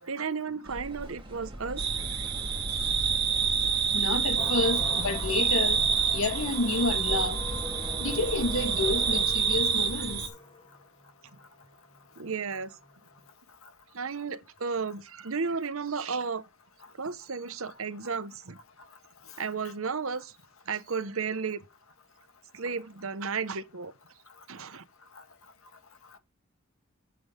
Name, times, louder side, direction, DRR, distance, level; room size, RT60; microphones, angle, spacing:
voice 1, 0.0-2.3 12.2-12.7 13.9-16.4 17.0-18.6 19.4-20.3 20.7-21.6 22.5-23.9 24.5-24.8, right 5 dB, 70° right, 1.0 m, -33 dB
sound 1, 0.6-9.2, right 1 dB, 25° right, 1.9 m, -40 dB
sound 2, 1.8-10.3, right 6 dB, 50° right, 2.1 m, -28 dB
voice 2, 3.9-5.8 6.1-7.4 8.0-10.3, left 3 dB, 75° left, 1.6 m, -29 dB
sound 3, 4.4-13.3, left 3 dB, 25° left, 2.7 m, -43 dB
7.8 x 7.5 x 5.1 m
head